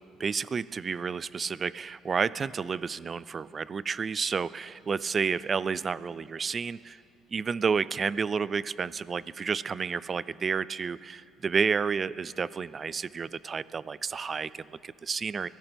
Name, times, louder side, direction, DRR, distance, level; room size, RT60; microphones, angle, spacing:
voice 1, 0.2-7.0 7.3-15.5, right 5 dB, 35° right, 19 dB, 0.3 m, -30 dB
23.0 x 15.0 x 3.5 m, 2.6 s
cardioid pair, 115°, 0 cm